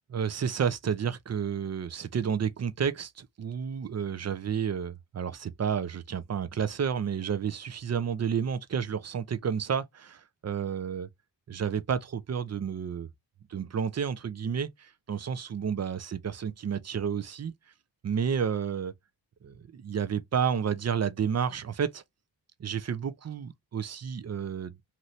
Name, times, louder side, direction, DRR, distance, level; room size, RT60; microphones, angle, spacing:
voice 1, 0.1-11.1 11.5-13.1 13.5-17.5 18.0-18.9 19.4-22.0 22.6-24.7, right 7 dB, 35° right, 0.6 m, -31 dB
2.8 x 2.6 x 3.1 m
supercardioid pair, 45°, 43 cm